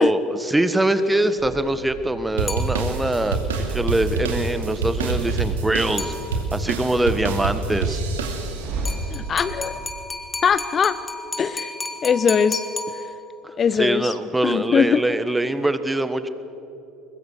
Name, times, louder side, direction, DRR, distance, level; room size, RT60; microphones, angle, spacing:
voice 1, 0.0-6.1 6.5-8.0 13.8-16.3, right 1 dB, 10° right, 12 dB, 1.4 m, -23 dB
sound 1, 1.4-9.9, right 2 dB, 55° right, 3.9 m, -36 dB
sound 2, 2.4-8.9, right 4 dB, 75° right, 2.4 m, -26 dB
sound 3, 2.5-3.3 6.0-6.7 8.9-13.5, left 3 dB, 20° left, 2.6 m, -33 dB
voice 2, 9.1-9.8 10.4-11.0 11.4-11.7 12.0-12.6 12.9-13.0 13.6-14.1 14.4-15.0, left 6 dB, 35° left, 14 dB, 0.7 m, -21 dB
22.0 x 21.0 x 6.6 m, 2.9 s
hypercardioid pair, 65°, 0 cm